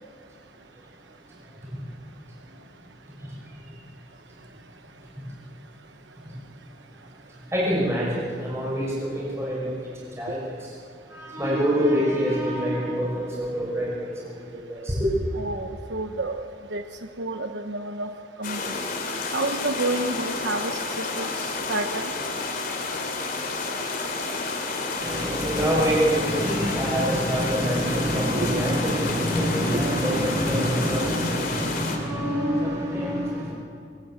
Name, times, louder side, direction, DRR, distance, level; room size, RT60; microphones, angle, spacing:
voice 1, 7.5-10.8 11.1-15.1 24.9-33.5, equal, 15° right, -5 dB, 6.1 m, -26 dB
voice 2, 15.4-16.8 17.2-18.1 18.4-18.8 19.3-22.1 28.3-28.6 29.7-29.8, right 2 dB, 85° right, 6 dB, 1.1 m, -30 dB
sound 1, 18.4-32.0, left 3 dB, 55° left, 3.4 m, -30 dB
22.5 x 20.0 x 8.9 m, 2.3 s
head